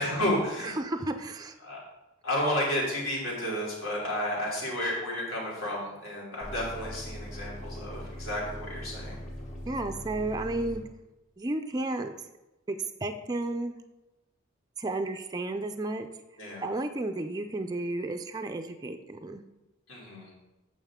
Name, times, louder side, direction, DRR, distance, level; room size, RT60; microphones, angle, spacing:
voice 1, 0.0-0.8 1.6-1.8 2.2-9.2 16.4-16.7 19.9-20.3, left 1 dB, 75° left, -4 dB, 3.1 m, -31 dB
voice 2, 0.6-1.5 9.7-10.8 11.4-12.1 12.7-13.8 14.8-16.1 16.6-19.4, right 2 dB, 20° right, 6 dB, 0.4 m, -32 dB
sound 1, 6.4-10.8, equal, 35° left, 2.2 m, -41 dB
8.8 x 6.6 x 3.6 m, 1.0 s
head